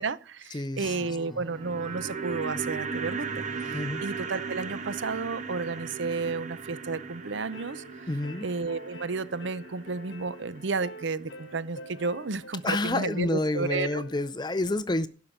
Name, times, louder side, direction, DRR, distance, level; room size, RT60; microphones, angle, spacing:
voice 1, 0.0-3.3 3.6-7.8 8.4-14.0, right 4 dB, 70° right, 0.7 m, -32 dB
voice 2, 0.5-1.0 1.3-1.4 3.7-4.0 8.1-8.5 12.6-15.1, left 2 dB, 20° left, 0.6 m, -29 dB
Strum, 0.8-6.2, equal, ahead, 1.6 m, -52 dB
sound 1, 1.3-11.6 11.8-11.9, right 5 dB, 40° right, 1.3 m, -37 dB
sound 2, 7.2-14.3, left 1 dB, 65° left, 1.3 m, -47 dB
12.0 x 5.8 x 8.6 m
head